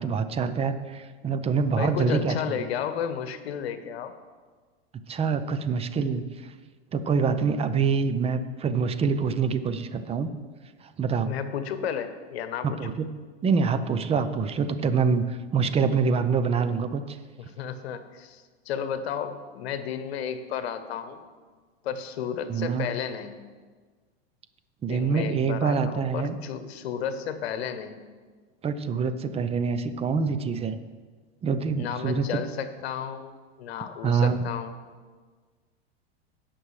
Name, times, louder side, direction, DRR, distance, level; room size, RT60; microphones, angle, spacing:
voice 1, 0.0-2.3 5.1-6.2 6.9-10.3 11.0-11.3 12.6-13.1 13.4-17.2 22.5-22.9 24.8-26.4 28.6-30.8 31.4-32.2 34.0-34.4, right 5 dB, 20° right, 11 dB, 0.6 m, -25 dB
voice 2, 1.8-4.1 11.3-12.9 17.4-21.2 21.8-23.4 24.9-28.0 31.8-34.8, left 8 dB, 75° left, 10 dB, 1.1 m, -33 dB
17.5 x 6.1 x 3.3 m, 1.5 s
hypercardioid pair, 110°, 32 cm